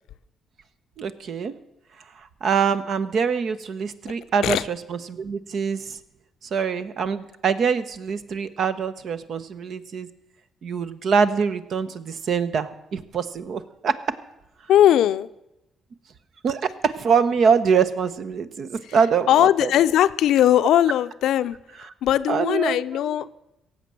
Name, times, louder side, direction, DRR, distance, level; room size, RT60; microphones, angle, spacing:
voice 1, 1.0-1.5 2.2-6.0 6.4-10.1 10.6-14.0 16.4-19.7 22.3-22.8 23.1-23.2, right 6 dB, 60° right, 12 dB, 0.9 m, -24 dB
voice 2, 14.7-15.3 19.3-21.6 22.0-23.3, left 11 dB, 80° left, 14 dB, 0.5 m, -19 dB
17.0 x 7.5 x 7.6 m, 0.90 s
cardioid pair, 90°, 0 cm